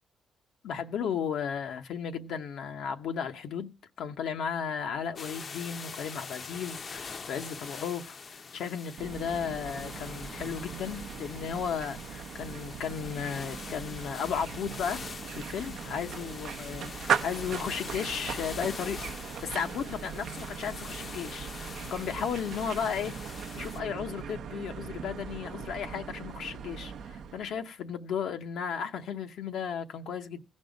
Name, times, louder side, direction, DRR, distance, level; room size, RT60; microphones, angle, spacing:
voice 1, 0.6-3.7 4.0-15.0 15.3-19.0 19.4-30.4, left 7 dB, 80° left, 0.8 m, -35 dB
sound 1, 5.2-23.8, left 5 dB, 40° left, 0.6 m, -44 dB
sound 2, 9.0-27.6, right 7 dB, 70° right, 0.6 m, -39 dB
15.5 x 5.4 x 5.2 m
cardioid pair, 115°, 0 cm